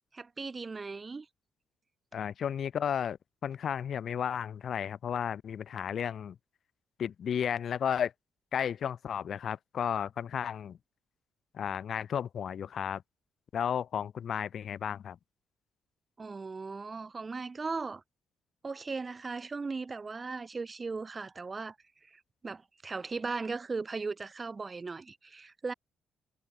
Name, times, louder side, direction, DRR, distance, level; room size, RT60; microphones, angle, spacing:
voice 1, 0.1-1.3 16.2-18.0 18.6-21.8 22.0-25.7, right 4 dB, 30° right, 2.8 m, -38 dB
voice 2, 2.1-6.4 7.0-8.1 8.5-10.8 11.5-13.0 13.5-15.2, left 8 dB, 60° left, 2.6 m, -33 dB
cardioid pair, 90°, 0 cm